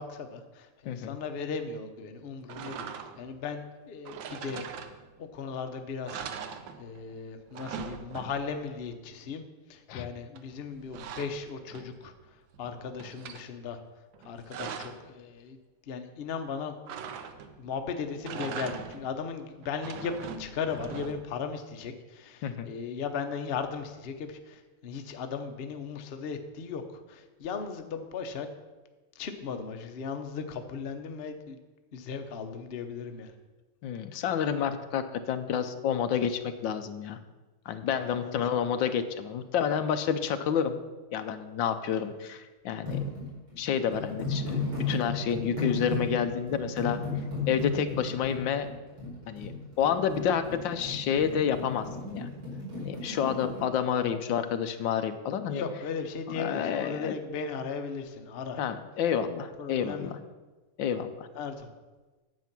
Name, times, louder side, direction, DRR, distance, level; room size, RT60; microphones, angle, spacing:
voice 1, 0.0-4.7 5.2-6.3 6.8-9.4 9.7-13.8 14.2-15.6 15.9-16.9 17.6-28.5 29.1-31.6 31.9-33.3 37.9-38.4 55.5-58.6 59.6-60.1 61.3-61.7, left 5 dB, 90° left, 6 dB, 0.5 m, -37 dB
voice 2, 0.9-1.2 9.9-10.1 22.4-22.7 33.8-37.2 37.7-40.8 41.1-43.0 43.6-47.0 47.5-48.7 49.3-49.5 49.8-52.3 52.8-55.6 56.4-57.1 58.6-60.2 60.8-61.3, left 8 dB, 70° left, 9 dB, 1.3 m, -29 dB
sound 1, 2.5-3.4 4.0-5.3 5.7-5.8 6.1-7.1 7.4-8.6 10.3-12.1 12.5-13.4 14.1-15.1 16.9-17.7 18.1-19.2 19.6-21.4, right 7 dB, 70° right, 1.4 m, -41 dB
sound 2, 42.9-53.6, left 3 dB, 85° right, 5.5 m, -35 dB
9.3 x 8.2 x 6.0 m, 1.2 s
omnidirectional pair, 2.3 m